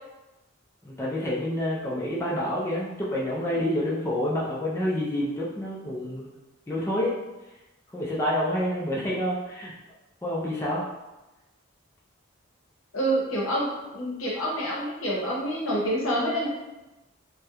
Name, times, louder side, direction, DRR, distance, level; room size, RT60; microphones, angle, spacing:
voice 1, 0.8-6.4 6.7-7.1 7.9-9.7 10.2-10.9, left 1 dB, 15° left, -7 dB, 0.3 m, -28 dB
voice 2, 12.9-16.5, right 1 dB, 80° left, -4 dB, 0.7 m, -27 dB
2.8 x 2.0 x 2.3 m, 1.0 s
head